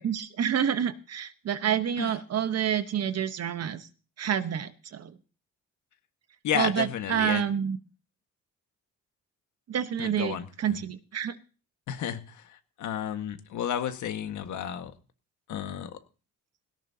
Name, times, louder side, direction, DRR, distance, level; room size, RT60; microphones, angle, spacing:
voice 1, 0.0-3.9 4.2-5.1 6.5-7.8 9.7-11.4, right 9 dB, 55° right, 11 dB, 1.2 m, -28 dB
voice 2, 6.4-7.4 10.0-10.5 11.9-14.9 15.5-15.9, left 9 dB, 75° left, 7 dB, 1.7 m, -32 dB
17.5 x 17.0 x 2.8 m, 0.36 s
cardioid pair, 90°, 30 cm